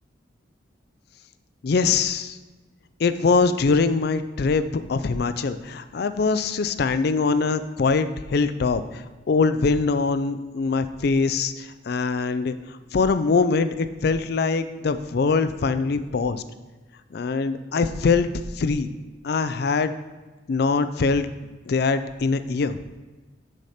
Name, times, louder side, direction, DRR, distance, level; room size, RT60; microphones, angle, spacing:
voice 1, 1.6-2.4 3.0-12.5 12.9-16.4 17.1-18.3 18.6-18.9 19.2-19.9 20.5-21.3 21.7-22.9, left 4 dB, 55° left, 11 dB, 0.4 m, -23 dB
6.5 x 6.4 x 4.2 m, 1.3 s
head